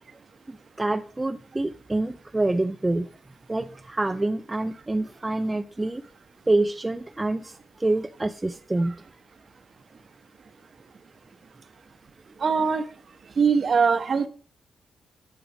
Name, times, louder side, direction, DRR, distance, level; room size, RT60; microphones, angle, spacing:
voice 1, 0.5-3.1 3.5-6.0 6.5-8.9, right 2 dB, 15° right, 8 dB, 0.4 m, -26 dB
voice 2, 12.4-12.8 13.4-14.3, right 5 dB, 40° right, 10 dB, 0.9 m, -21 dB
10.0 x 6.5 x 5.0 m, 0.42 s
wide cardioid pair, 165°, 0 cm